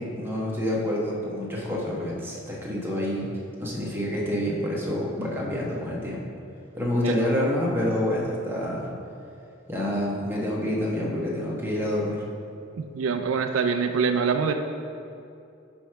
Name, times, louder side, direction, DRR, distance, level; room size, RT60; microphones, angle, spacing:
voice 1, 0.0-3.3 3.6-6.2 6.8-8.9 9.7-12.2, left 1 dB, 10° right, -4 dB, 1.2 m, -27 dB
voice 2, 7.0-7.5 12.8-14.5, right 5 dB, 80° right, 7 dB, 0.4 m, -25 dB
8.3 x 3.2 x 5.7 m, 2.6 s
head